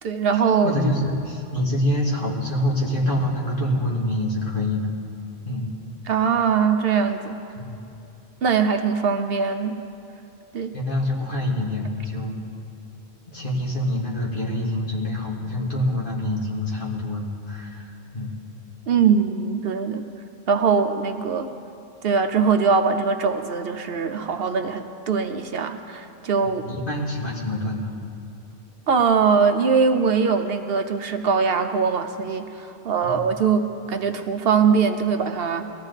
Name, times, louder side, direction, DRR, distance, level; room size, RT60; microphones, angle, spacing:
voice 1, 0.0-0.7 6.0-7.4 8.4-9.8 10.5-10.7 18.9-20.0 20.5-21.5 22.0-26.6 28.9-35.7, right 6 dB, 65° right, 7 dB, 0.9 m, -22 dB
voice 2, 0.6-4.9 5.5-5.7 7.6-7.8 10.7-12.3 13.3-17.9 18.1-18.3 26.4-27.9 33.0-33.2, left 1 dB, 50° left, -4 dB, 2.3 m, -26 dB
20.5 x 14.0 x 4.0 m, 2.7 s
omnidirectional pair, 1.1 m